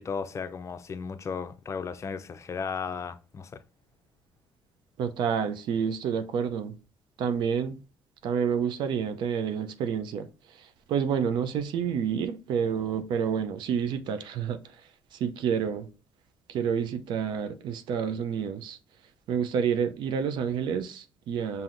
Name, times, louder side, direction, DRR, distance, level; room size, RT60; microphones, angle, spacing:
voice 1, 0.0-3.6, left 5 dB, 35° left, 0.5 m, -35 dB
voice 2, 5.0-6.7 7.2-7.8 8.2-10.3 10.6-14.6 15.1-15.9 16.5-18.8 19.3-21.6, right 7 dB, 70° right, 0.5 m, -29 dB
5.6 x 2.7 x 2.5 m
supercardioid pair, 75°, 8 cm